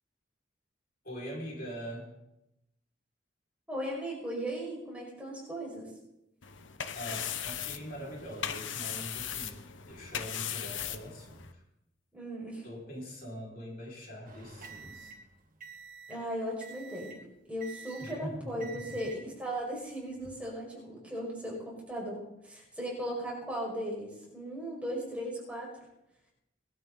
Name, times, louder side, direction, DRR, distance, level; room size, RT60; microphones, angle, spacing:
voice 1, 1.0-2.1 6.9-11.6 12.6-15.1 18.0-19.0, equal, 50° left, -4 dB, 5.9 m, -43 dB
voice 2, 3.7-5.9 12.1-12.7 16.1-17.2 17.5-25.7, equal, 5° right, -4 dB, 6.2 m, -37 dB
sound 1, 6.4-11.5, left 9 dB, 85° left, 1.0 m, -38 dB
sound 2, 14.2-16.2 16.6-17.2 17.6-18.2 18.6-19.2 20.0-20.3, right 5 dB, 45° right, 2.1 m, -48 dB
21.5 x 12.5 x 4.2 m, 0.88 s
head